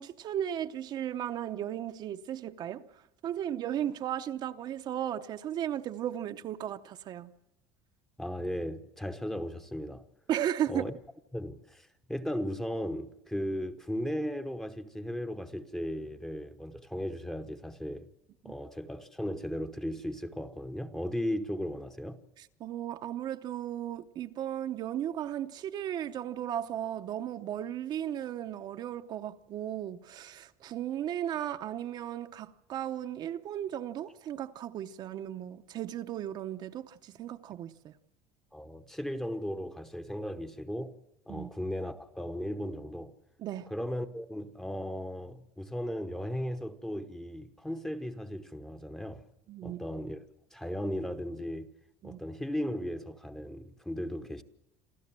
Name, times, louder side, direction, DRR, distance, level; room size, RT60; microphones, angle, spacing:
voice 1, 0.0-7.3 10.3-10.9 18.4-18.5 22.4-37.9 41.3-41.5 43.4-43.7 49.5-49.8 52.0-52.2, right 11 dB, 40° right, 0.8 m, -35 dB
voice 2, 8.2-10.0 10.7-10.9 11.3-18.1 18.4-22.2 38.5-40.9 41.3-43.1 43.7-49.2 49.6-50.2 50.5-51.7 52.0-54.4, equal, 5° left, 1.0 m, -36 dB
27.5 x 13.5 x 7.5 m
cardioid pair, 160°, 11 cm